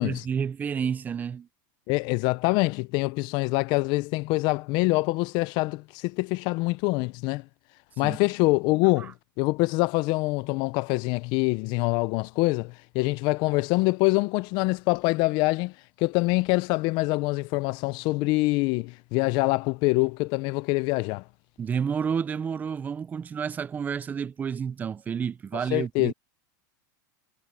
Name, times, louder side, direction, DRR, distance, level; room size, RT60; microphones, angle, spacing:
voice 1, 0.0-1.5 8.0-8.2 9.0-9.1 21.6-26.1, right 7 dB, 15° right, 0.4 m, -30 dB
voice 2, 1.9-7.4 8.0-15.7 16.0-21.2 25.7-26.1, left 24 dB, 45° left, 0.5 m, -25 dB
supercardioid pair, 145°, 11 cm